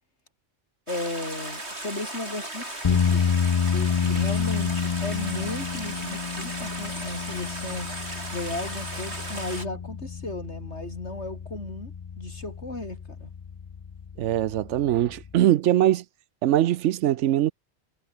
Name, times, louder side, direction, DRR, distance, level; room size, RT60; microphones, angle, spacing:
voice 1, 0.9-3.2 3.7-7.9 8.3-13.3, left 2 dB, 70° left, 5.2 m, -35 dB
Stream, 0.9-9.7, right 1 dB, 65° right, 7.4 m, -36 dB
sound 1, 2.8-15.3, left 6 dB, 40° left, 0.5 m, -29 dB
voice 2, 14.2-16.0 16.4-17.5, right 12 dB, 85° right, 1.0 m, -22 dB
omnidirectional pair, 1.2 m